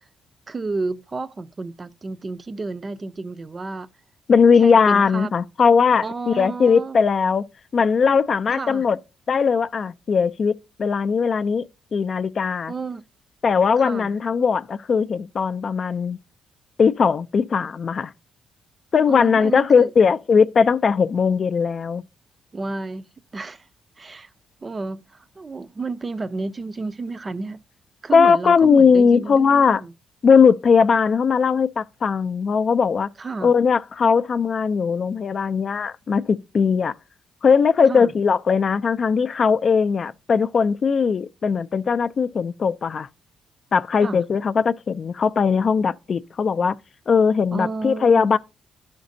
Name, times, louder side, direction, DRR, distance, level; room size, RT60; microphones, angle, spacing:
voice 1, 0.5-3.9 4.6-5.3 6.0-7.0 8.5-8.8 12.7-13.0 13.8-14.1 19.1-19.9 22.5-23.7 24.0-24.3 24.6-27.6 28.0-29.9 33.2-33.5 37.9-38.1 44.0-44.2 47.5-48.3, right 3 dB, 30° right, 0.4 m, -31 dB
voice 2, 4.3-7.4 7.7-9.0 9.3-11.7 11.9-12.7 13.4-16.2 16.8-18.1 18.9-22.0 28.1-29.8 30.2-33.1 33.4-36.9 37.4-43.1 43.7-46.8 47.1-48.4, left 5 dB, 45° left, 0.4 m, -19 dB
12.0 x 5.2 x 2.6 m
cardioid pair, 90°, 0 cm